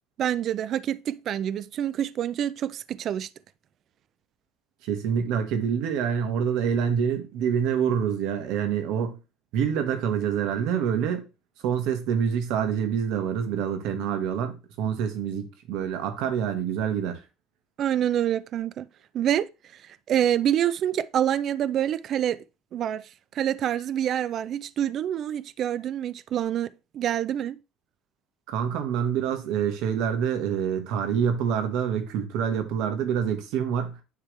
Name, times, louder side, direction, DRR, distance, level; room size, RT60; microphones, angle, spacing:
voice 1, 0.2-3.3 17.8-18.9 19.1-19.5 20.1-22.4 22.7-23.1 23.3-27.6, right 10 dB, 35° right, 0.3 m, -26 dB
voice 2, 4.8-9.2 9.5-11.3 11.6-17.2 28.5-34.0, right 8 dB, 60° right, 1.4 m, -26 dB
9.7 x 3.4 x 3.2 m
cardioid pair, 175°, 0 cm